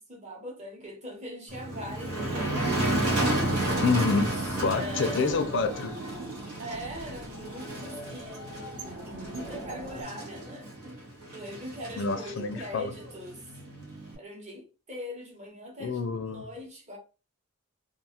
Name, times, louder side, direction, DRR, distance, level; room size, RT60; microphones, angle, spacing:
voice 1, 0.1-3.3 4.2-5.5 6.6-10.7 11.3-13.4 14.2-17.0, equal, 30° right, 0.9 m, -41 dB
Motor vehicle (road), 1.5-14.1, right 1 dB, 90° right, 1.0 m, -32 dB
sound 1, 3.4-10.0, right 1 dB, 60° right, 0.9 m, -43 dB
voice 2, 3.8-4.3 4.6-6.0 12.0-12.9 15.8-16.5, left 4 dB, 55° left, 0.4 m, -27 dB
2.4 x 2.3 x 2.8 m
head